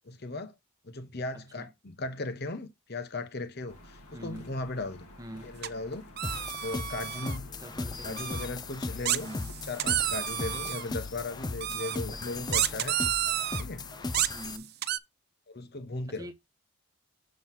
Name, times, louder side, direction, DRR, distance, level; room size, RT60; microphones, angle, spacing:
voice 1, 0.0-0.5 0.8-5.1 5.4-6.1 6.6-7.5 8.0-9.3 9.7-13.0 13.6-13.9 15.5-16.3, left 2 dB, 45° left, 0.9 m, -37 dB
voice 2, 1.3-1.7 4.1-4.5 5.2-5.6 7.6-8.3 9.2-9.5 12.1-12.5 14.3-14.7 16.1-16.3, right 1 dB, 15° right, 0.9 m, -44 dB
sound 1, 3.7-14.3, left 1 dB, 90° left, 1.9 m, -52 dB
sound 2, 5.6-5.7 6.2-7.4 8.2-8.5 9.1-10.8 11.6-12.0 12.5-13.6 14.1-15.0, right 12 dB, 45° right, 0.5 m, -30 dB
sound 3, 6.2-14.6, left 3 dB, 20° left, 0.4 m, -37 dB
7.6 x 3.1 x 5.8 m
head